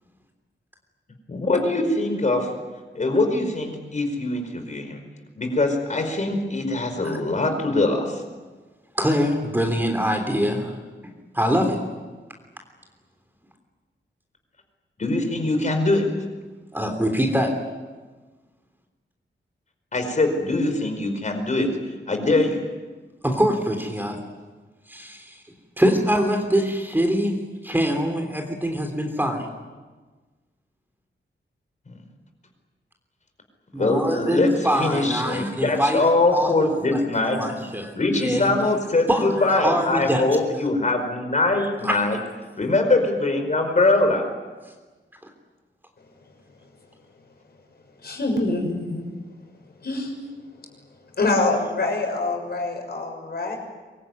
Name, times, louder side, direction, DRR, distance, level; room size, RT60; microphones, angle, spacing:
voice 1, 1.3-2.5 2.9-5.0 5.4-8.2 15.0-16.1 19.9-21.7 22.1-22.6 31.9-32.0 33.7-34.5 34.8-37.4 37.9-42.2 42.6-44.2, left 2 dB, 40° left, 5 dB, 5.0 m, -22 dB
voice 2, 8.9-10.7 11.3-11.8 16.7-17.5 23.2-24.2 24.9-25.4 25.8-27.4 27.6-29.5 33.7-36.0 36.3-37.0 37.3-37.9 38.2-38.5 39.1-39.2 39.6-40.2 41.8-42.0, equal, 10° right, 3 dB, 3.3 m, -23 dB
voice 3, 48.0-49.0 49.8-50.1 51.2-53.6, left 2 dB, 55° left, 2 dB, 6.5 m, -25 dB
25.0 x 22.5 x 9.5 m, 1.3 s
wide cardioid pair, 165°, 19 cm